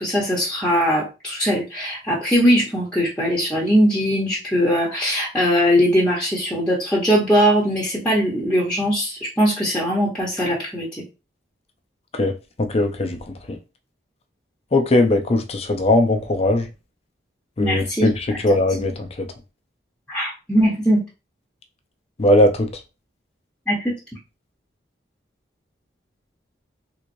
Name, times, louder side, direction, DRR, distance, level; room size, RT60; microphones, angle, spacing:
voice 1, 0.0-11.0 17.6-18.1 20.1-21.0 23.7-23.9, equal, 5° left, 0.9 m, -20 dB
voice 2, 12.6-13.6 14.7-16.7 17.6-19.3 22.2-22.7, left 1 dB, 35° left, 0.5 m, -19 dB
3.6 x 3.0 x 2.6 m
head